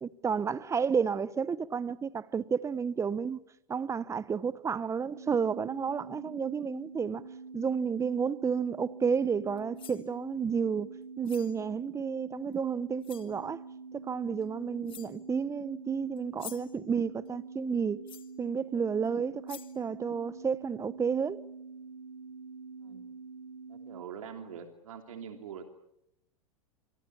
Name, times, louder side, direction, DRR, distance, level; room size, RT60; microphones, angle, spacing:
voice 1, 0.0-3.4 3.7-7.2 7.5-10.9 11.2-13.6 13.9-18.0 18.4-21.4, right 6 dB, 15° right, 1.0 m, -31 dB
sound 1, 5.1-24.0, right 4 dB, 85° right, 1.4 m, -46 dB
sound 2, 9.6-10.1 11.2-11.6 12.5-12.6 13.0-13.3 14.4-14.5 14.9-15.3 16.2-16.8 18.1-18.4 19.0-19.1 19.5-19.8, left 10 dB, 30° left, 2.3 m, -48 dB
voice 2, 23.7-25.6, right 7 dB, 70° right, 3.2 m, -44 dB
26.5 x 24.0 x 7.0 m
hypercardioid pair, 100°, 18 cm